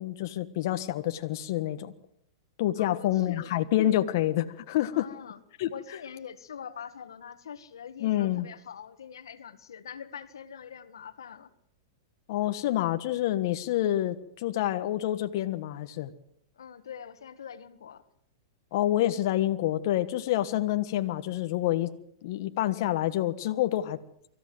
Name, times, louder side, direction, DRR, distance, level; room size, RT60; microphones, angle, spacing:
voice 1, 0.0-1.9 2.6-5.1 5.6-5.7 8.0-8.5 12.3-16.1 18.7-21.9 22.2-24.0, left 13 dB, 55° left, 8 dB, 1.4 m, -27 dB
voice 2, 2.8-3.7 4.9-5.4 5.7-11.5 16.6-18.0, left 7 dB, 90° left, 12 dB, 1.7 m, -44 dB
24.5 x 14.5 x 7.9 m, 0.71 s
hypercardioid pair, 135°, 2 cm